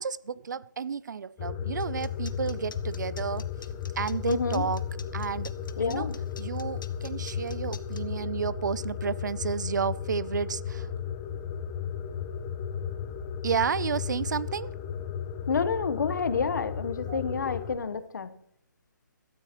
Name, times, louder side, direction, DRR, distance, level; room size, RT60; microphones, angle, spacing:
voice 1, 0.0-3.5 4.0-4.8 5.1-5.5 5.8-6.1 6.4-10.9 13.4-14.7 17.1-17.2, right 6 dB, 65° right, 20 dB, 0.5 m, -31 dB
sound 1, 1.4-17.8, left 8 dB, 15° left, 0.6 m, -34 dB
sound 2, 1.8-8.0, left 5 dB, 85° left, 1.1 m, -47 dB
voice 2, 4.3-4.7 5.8-6.2 15.5-18.3, left 5 dB, 65° left, 13 dB, 1.1 m, -29 dB
19.5 x 13.0 x 3.0 m, 0.68 s
hypercardioid pair, 170°, 11 cm